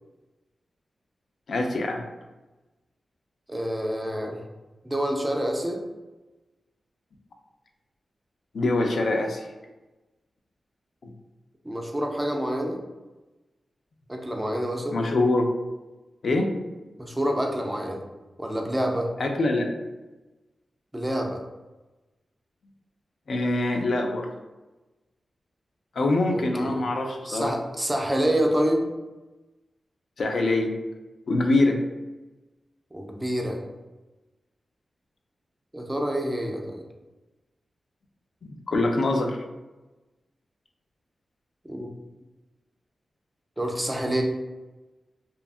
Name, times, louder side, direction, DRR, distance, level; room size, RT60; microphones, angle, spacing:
voice 1, 1.5-2.0 8.5-9.5 11.0-11.1 14.9-15.5 16.2-16.5 19.2-19.7 23.3-24.3 26.0-27.5 30.2-30.7 31.3-31.8 38.4-39.4, left 2 dB, 70° left, 3 dB, 0.3 m, -24 dB
voice 2, 3.5-4.4 4.8-5.8 11.6-12.8 14.1-15.0 17.0-18.0 18.4-19.1 20.9-21.4 26.3-26.8 27.3-28.9 32.9-33.6 35.7-36.8 41.6-41.9 43.6-44.2, equal, 10° right, 1 dB, 0.3 m, -27 dB
2.7 x 2.3 x 2.3 m, 1.1 s
wide cardioid pair, 120°, 0 cm